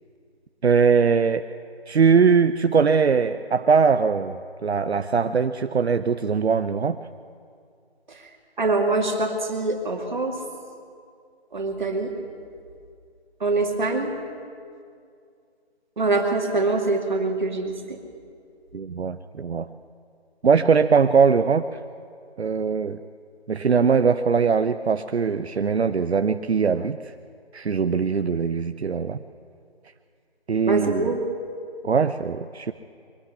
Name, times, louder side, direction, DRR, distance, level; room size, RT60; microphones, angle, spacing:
voice 1, 0.6-1.4 1.9-7.0 18.7-19.7 20.4-21.7 22.4-23.0 23.5-27.1 27.5-29.2 30.5-31.1 31.8-32.7, right 5 dB, 75° right, 9 dB, 0.8 m, -21 dB
voice 2, 8.6-10.4 11.5-12.1 13.4-14.1 16.0-18.0 30.7-31.2, right 3 dB, 45° right, 3 dB, 2.6 m, -24 dB
22.5 x 12.0 x 9.7 m, 2.3 s
figure-of-eight pair, 175°, 33 cm